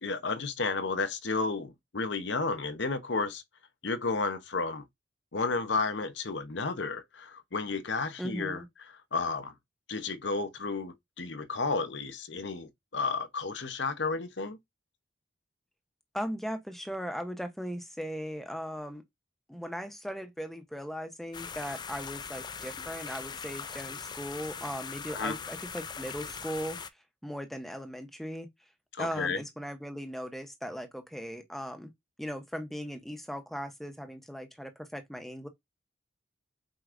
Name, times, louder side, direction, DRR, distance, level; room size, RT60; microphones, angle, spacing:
voice 1, 0.0-3.4 3.8-4.8 5.3-8.6 9.1-9.5 9.9-14.6 25.1-25.3 28.9-29.4, left 4 dB, 70° left, 0.9 m, -32 dB
voice 2, 8.2-8.7 16.1-19.0 19.5-26.8 27.2-28.5 29.0-31.9 32.2-35.5, equal, ahead, 0.8 m, -38 dB
sound 1, 21.3-26.9, left 6 dB, 20° left, 0.3 m, -41 dB
7.9 x 4.6 x 2.6 m
head